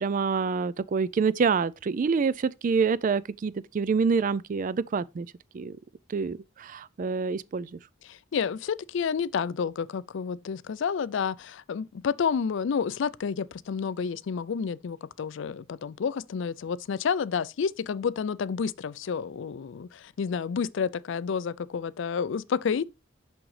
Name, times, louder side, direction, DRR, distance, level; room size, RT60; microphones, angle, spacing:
voice 1, 0.0-5.3 5.5-5.8 6.1-7.8, right 5 dB, 40° right, 0.3 m, -27 dB
voice 2, 8.0-22.8, left 6 dB, 65° left, 0.4 m, -30 dB
6.2 x 6.0 x 3.2 m
head